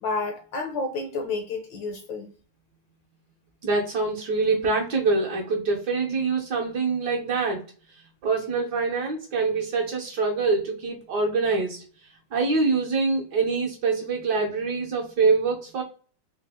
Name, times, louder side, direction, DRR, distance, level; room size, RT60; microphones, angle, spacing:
voice 1, 0.0-2.3, left 3 dB, 75° left, 1.1 m, -30 dB
voice 2, 3.6-7.6 8.2-11.8 12.3-15.8, right 4 dB, 60° right, 1.2 m, -25 dB
4.1 x 2.1 x 3.3 m
omnidirectional pair, 2.4 m